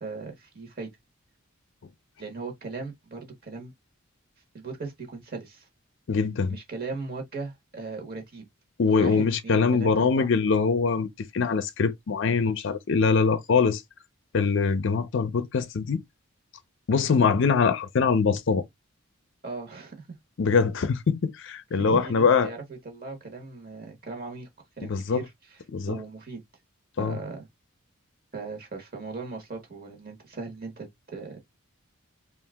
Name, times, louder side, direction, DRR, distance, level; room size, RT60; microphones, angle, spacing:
voice 1, 0.0-0.9 2.2-3.7 4.5-5.7 6.5-8.5 8.9-10.3 19.4-20.1 21.7-24.5 24.8-25.6 25.9-26.4 27.0-27.4 28.3-31.4, right 3 dB, 45° right, 1.0 m, -38 dB
voice 2, 6.1-6.6 8.8-11.1 11.3-13.8 14.3-16.0 16.9-18.6 20.4-22.5 24.8-25.2 25.7-26.0 27.0-27.2, left 5 dB, 55° left, 0.4 m, -23 dB
2.8 x 2.4 x 3.3 m
head